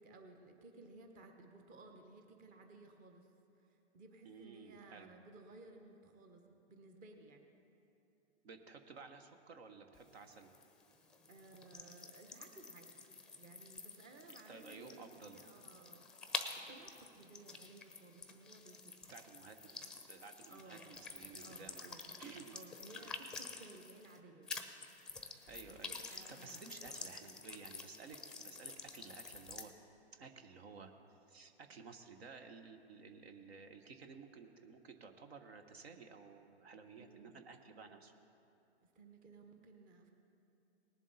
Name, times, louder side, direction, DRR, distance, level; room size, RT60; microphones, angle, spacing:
voice 1, 0.0-3.3 3.6-7.5 11.3-19.1 20.5-21.0 21.4-22.2 22.5-24.7 25.7-27.2 37.0-37.4 38.8-40.1, right 2 dB, 25° right, 4 dB, 1.1 m, -58 dB
voice 2, 4.2-5.1 8.4-10.5 14.3-15.4 19.1-21.9 22.2-22.5 22.9-23.1 23.6-23.7 25.5-29.7 30.1-30.9 31.3-38.1, right 5 dB, 65° right, 6 dB, 1.1 m, -54 dB
sound 1, 9.9-24.2 24.5-29.7, left 4 dB, ahead, 0.6 m, -49 dB
19.5 x 7.3 x 4.1 m, 2.7 s
hypercardioid pair, 120°, 33 cm